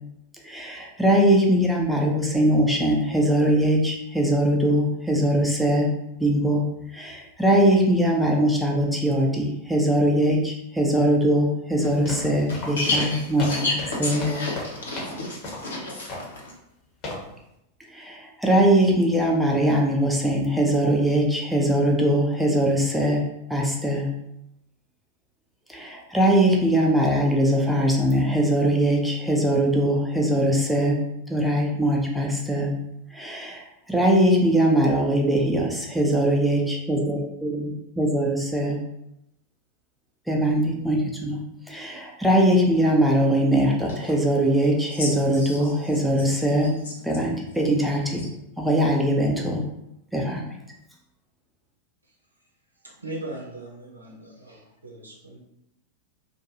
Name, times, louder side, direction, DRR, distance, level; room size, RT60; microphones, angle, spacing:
voice 1, 0.4-5.9 6.2-6.6 6.9-14.3 17.9-23.2 23.5-24.1 25.7-31.0 31.3-32.7 33.1-38.8 40.3-41.4 41.7-46.7 47.0-48.2 48.6-49.6 50.1-50.5, right 1 dB, ahead, -1 dB, 0.5 m, -21 dB
sound 1, 11.8-15.2 15.4-15.7 16.1-16.4 17.0-17.3, left 1 dB, 35° left, 0.9 m, -35 dB
voice 2, 12.8-16.5 45.0-45.1 45.4-45.7, left 2 dB, 65° left, -4 dB, 0.9 m, -30 dB
voice 3, 52.8-55.4, right 2 dB, 80° right, -1 dB, 0.6 m, -39 dB
2.5 x 2.2 x 2.8 m, 0.82 s
figure-of-eight pair, 90°, 0 cm